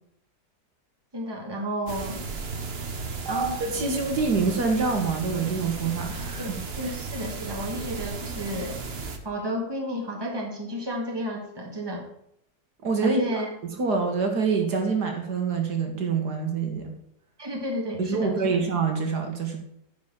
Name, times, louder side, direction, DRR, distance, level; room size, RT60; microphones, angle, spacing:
voice 1, 1.1-2.2 3.2-3.6 6.4-8.8 9.2-12.0 13.0-13.5 17.4-18.6, right 1 dB, 15° right, 0 dB, 1.9 m, -32 dB
sound 1, 1.9-9.2, right 4 dB, 40° right, 1.2 m, -35 dB
voice 2, 3.6-6.6 6.9-7.0 12.8-16.9 18.0-19.6, right 4 dB, 70° right, 3 dB, 2.1 m, -26 dB
10.0 x 5.1 x 7.3 m, 0.75 s
omnidirectional pair, 1.8 m